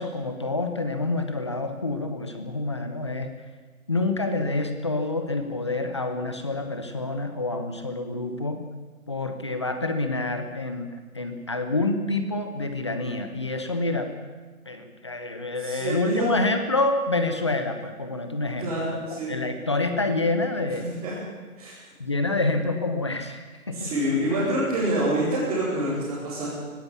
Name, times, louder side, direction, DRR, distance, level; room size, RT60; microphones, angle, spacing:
voice 1, 0.0-3.3 3.9-8.6 9.1-14.1 14.7-20.9 22.0-23.9, left 2 dB, 20° left, 7 dB, 1.0 m, -27 dB
voice 2, 15.6-16.3 18.6-19.3 20.7-21.1 21.6-21.7 23.7-26.5, right 1 dB, 10° right, -13 dB, 4.5 m, -27 dB
18.0 x 17.0 x 8.6 m, 1.4 s
figure-of-eight pair, 165°, 44 cm